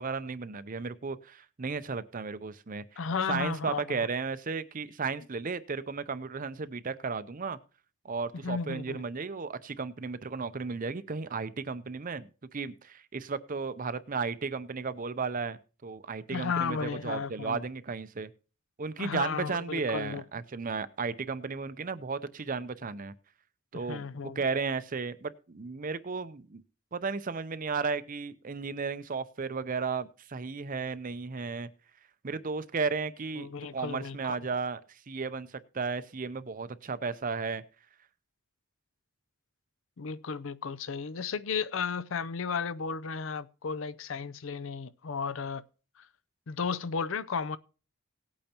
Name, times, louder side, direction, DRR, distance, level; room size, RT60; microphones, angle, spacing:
voice 1, 0.0-3.0 3.3-7.6 8.0-18.3 18.8-23.1 23.7-26.6 26.9-31.7 32.2-37.6, right 4 dB, 40° right, 0.6 m, -34 dB
voice 2, 3.0-4.1 8.4-9.0 16.3-17.6 19.0-20.2 23.7-24.4 33.4-34.2 40.0-45.6 46.5-47.6, left 5 dB, 60° left, 0.5 m, -34 dB
18.0 x 8.6 x 2.9 m
head